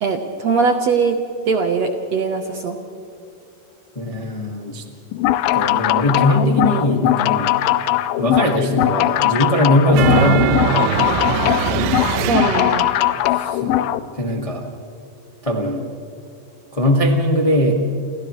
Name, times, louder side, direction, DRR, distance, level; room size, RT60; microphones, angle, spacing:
voice 1, 0.0-1.2 1.5-2.8 12.2-12.9, right 5 dB, 65° right, 4 dB, 1.7 m, -20 dB
voice 2, 3.9-4.8 5.5-7.5 8.2-10.7 13.3-14.7 15.4-15.9 16.7-17.7, left 1 dB, 25° left, 0 dB, 0.7 m, -20 dB
sound 1, 5.1-14.0, left 14 dB, 85° left, 2.4 m, -20 dB
sound 2, 9.9-13.1, right 9 dB, 85° right, 2.7 m, -21 dB
29.5 x 28.0 x 3.2 m, 2.7 s
omnidirectional pair, 4.3 m